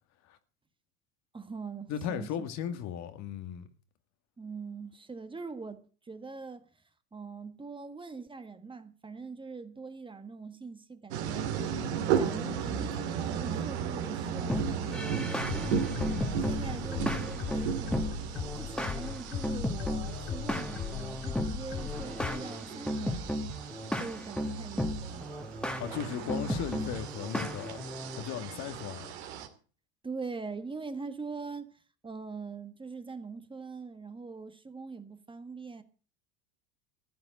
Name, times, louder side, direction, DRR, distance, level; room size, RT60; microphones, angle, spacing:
voice 1, 1.3-2.5 4.4-6.7 7.1-11.5 11.9-16.1 16.4-18.1 18.5-23.4 24.0-25.3 30.0-35.8, right 4 dB, 15° right, 1.5 m, -43 dB
voice 2, 1.9-3.7 25.8-27.8 28.1-29.1, left 9 dB, 55° left, 2.0 m, -36 dB
sound 1, 11.1-29.5, right 7 dB, 75° right, 2.6 m, -36 dB
sound 2, 14.5-28.2, left 1 dB, 5° left, 2.1 m, -35 dB
sound 3, 15.4-22.4, left 8 dB, 40° left, 1.8 m, -39 dB
15.0 x 7.9 x 7.8 m
hypercardioid pair, 85°, 33 cm